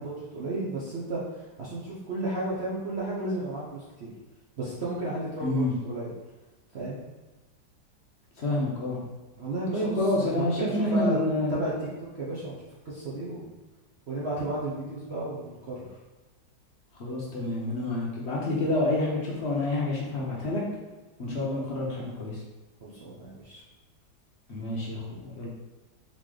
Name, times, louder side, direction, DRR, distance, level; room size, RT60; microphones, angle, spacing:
voice 1, 0.0-4.1 4.6-6.1 6.7-7.0 9.4-11.2 11.5-11.9 12.1-12.6 12.8-13.5 14.1-16.0 22.8-23.6, right 1 dB, 55° right, -7 dB, 0.7 m, -33 dB
voice 2, 5.4-5.7 8.4-9.0 9.7-11.5 17.0-20.6 21.2-22.4 24.5-25.5, left 1 dB, 60° left, -4 dB, 0.7 m, -28 dB
4.0 x 3.1 x 3.8 m, 1.2 s
omnidirectional pair, 2.0 m